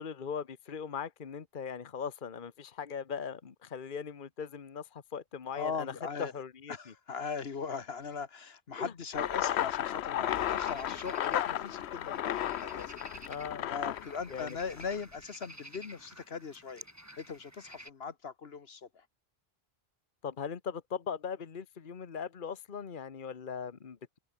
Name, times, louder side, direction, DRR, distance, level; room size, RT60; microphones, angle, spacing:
voice 1, 0.0-6.9 8.8-8.9 13.3-13.7 14.3-14.6 20.2-24.2, left 6 dB, 55° left, 1.3 m, -39 dB
voice 2, 5.5-6.3 6.7-13.0 13.7-16.8 17.2-19.0, left 5 dB, 70° left, 1.6 m, -39 dB
sound 1, 9.1-15.0, left 11 dB, 90° left, 0.9 m, -34 dB
sound 2, 10.2-17.9, right 1 dB, 15° right, 4.1 m, -52 dB
omnidirectional pair, 1.1 m